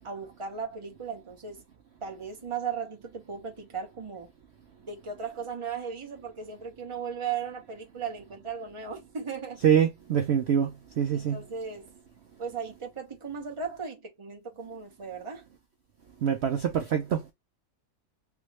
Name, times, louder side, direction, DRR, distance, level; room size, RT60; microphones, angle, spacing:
voice 1, 0.0-1.6 2.0-4.3 4.9-9.6 11.1-11.9 12.4-15.5, right 6 dB, 25° right, 0.9 m, -37 dB
voice 2, 9.6-11.4 16.2-17.2, right 8 dB, 60° right, 0.8 m, -25 dB
3.5 x 3.1 x 3.1 m
omnidirectional pair, 1.5 m